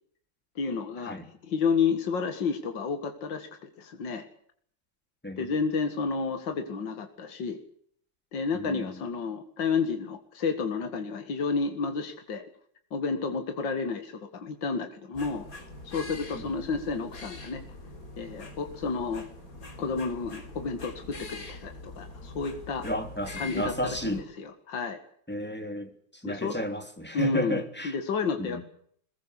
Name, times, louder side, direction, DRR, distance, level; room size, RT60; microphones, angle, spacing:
voice 1, 0.6-1.2 1.4-4.3 5.4-7.6 8.3-12.4 12.9-15.5 15.8-17.6 18.2-19.2 19.8-22.9 23.4-23.7 24.1-25.0 26.2-26.6 27.1-28.6, left 5 dB, 70° left, 6 dB, 2.6 m, -31 dB
voice 2, 8.5-9.0 16.3-16.5 22.8-24.3 25.3-27.9 28.4-28.6, equal, 5° left, 5 dB, 3.1 m, -33 dB
sound 1, 15.1-24.2, left 2 dB, 45° left, 3.9 m, -43 dB
22.0 x 21.0 x 8.3 m, 0.63 s
omnidirectional pair, 2.0 m